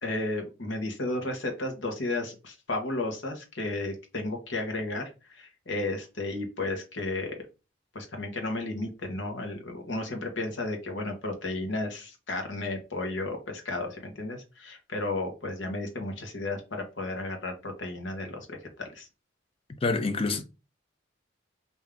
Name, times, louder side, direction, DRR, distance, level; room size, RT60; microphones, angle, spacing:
voice 1, 0.0-7.4 7.9-19.1, left 2 dB, 70° left, 1.0 m, -33 dB
voice 2, 19.8-20.4, left 3 dB, 30° left, 0.5 m, -26 dB
3.5 x 2.7 x 3.4 m
head